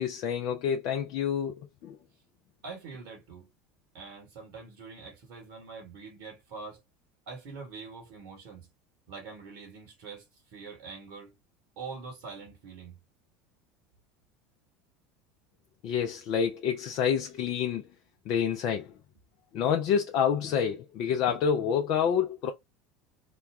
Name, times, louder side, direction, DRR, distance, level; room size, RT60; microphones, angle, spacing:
voice 1, 0.0-2.0 15.8-17.8 18.3-18.9 19.5-22.5, left 8 dB, 60° left, 0.5 m, -28 dB
voice 2, 2.6-3.5 3.9-6.8 7.3-8.7 9.1-11.3 11.8-13.0, right 4 dB, 60° right, 1.5 m, -44 dB
3.0 x 2.3 x 3.5 m
hypercardioid pair, 80°, 0 cm